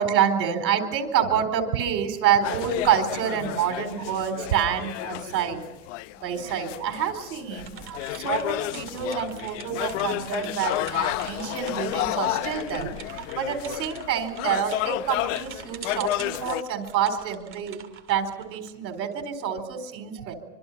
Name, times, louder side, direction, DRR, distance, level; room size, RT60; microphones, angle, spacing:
voice 1, 0.0-5.7 6.2-17.8 18.1-20.3, right 8 dB, 80° right, 6 dB, 4.3 m, -27 dB
sound 1, 2.4-16.6, left 16 dB, 50° left, 0.8 m, -31 dB
sound 2, 7.6-19.1, right 8 dB, 25° right, 2.2 m, -45 dB
25.5 x 24.5 x 5.7 m, 1.0 s
supercardioid pair, 145°, 50 cm